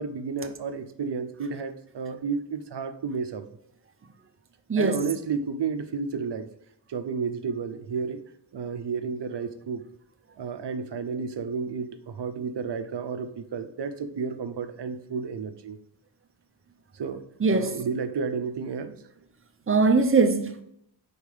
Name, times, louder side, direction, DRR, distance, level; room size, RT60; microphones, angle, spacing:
voice 1, 0.0-3.4 4.8-6.5 6.9-8.2 8.5-9.8 10.4-15.8 16.9-17.2 17.5-18.9, right 5 dB, 70° right, 0.7 m, -32 dB
voice 2, 4.7-5.0 17.4-17.8 19.7-20.6, right 4 dB, 30° right, 0.6 m, -21 dB
5.4 x 4.3 x 4.9 m
wide cardioid pair, 120°, 43 cm